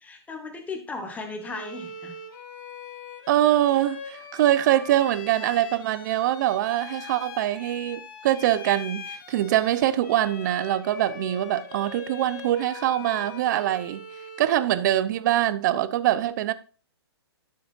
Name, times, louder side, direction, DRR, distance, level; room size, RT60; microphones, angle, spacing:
voice 1, 0.1-2.1, left 3 dB, 10° left, 1.5 m, -36 dB
Bowed string instrument, 1.4-14.8, left 5 dB, 45° left, 2.6 m, -41 dB
voice 2, 3.3-14.0 14.4-16.5, right 13 dB, 45° right, 0.7 m, -23 dB
12.5 x 6.8 x 2.6 m
hypercardioid pair, 140°, 14 cm